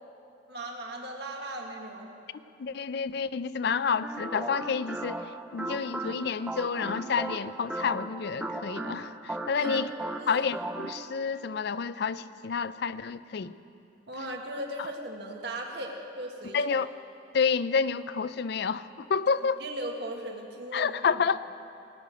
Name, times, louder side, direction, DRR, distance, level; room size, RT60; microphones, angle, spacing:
voice 1, 0.5-2.1 9.5-9.9 10.2-10.5 14.1-16.7 19.6-21.0, right 1 dB, 60° right, 1 dB, 1.7 m, -37 dB
voice 2, 2.6-5.2 5.5-9.9 10.3-13.6 16.5-16.9 17.3-19.6 20.7-21.4, left 5 dB, 60° left, 16 dB, 0.4 m, -29 dB
sound 1, 4.0-11.1, right 2 dB, 5° right, 0.6 m, -37 dB
19.0 x 6.7 x 9.1 m, 2.6 s
head